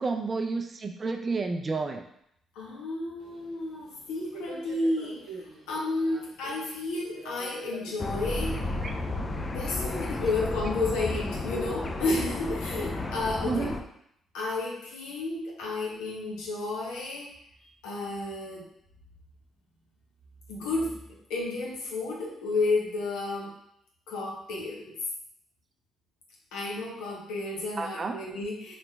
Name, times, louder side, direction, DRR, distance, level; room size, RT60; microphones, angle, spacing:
voice 1, 0.0-2.0 8.8-8.9 13.4-13.8 27.8-28.2, right 4 dB, 40° right, 4 dB, 0.4 m, -30 dB
voice 2, 2.5-8.7 9.5-13.7 14.3-17.3 17.8-18.6 20.5-21.0 21.3-23.5 24.1-24.9 26.5-28.7, left 2 dB, 85° left, -3 dB, 0.9 m, -32 dB
Subway metro underground, 3.2-12.9, right 3 dB, 70° right, 0.8 m, -49 dB
sound 1, 8.0-13.8, left 2 dB, 35° left, 0.4 m, -32 dB
3.9 x 3.1 x 2.2 m, 0.74 s
supercardioid pair, 55°, 0 cm